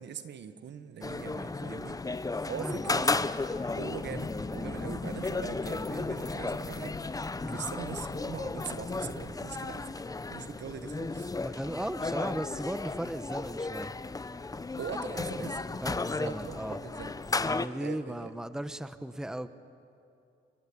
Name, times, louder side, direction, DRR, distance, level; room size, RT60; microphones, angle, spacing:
voice 1, 0.0-3.1 3.7-11.3 14.8-17.1 17.8-18.3, right 8 dB, 65° right, 10 dB, 1.6 m, -42 dB
sound 1, 1.0-17.7, left 3 dB, 20° left, 0.9 m, -34 dB
voice 2, 2.6-3.2 7.4-7.7 11.4-13.9 15.1-15.2 15.8-16.8 17.4-19.5, right 1 dB, 5° right, 12 dB, 1.0 m, -37 dB
sound 2, 3.5-9.3, left 7 dB, 65° left, 2.3 m, -50 dB
29.0 x 23.5 x 8.7 m, 2.6 s
cardioid pair, 90°, 20 cm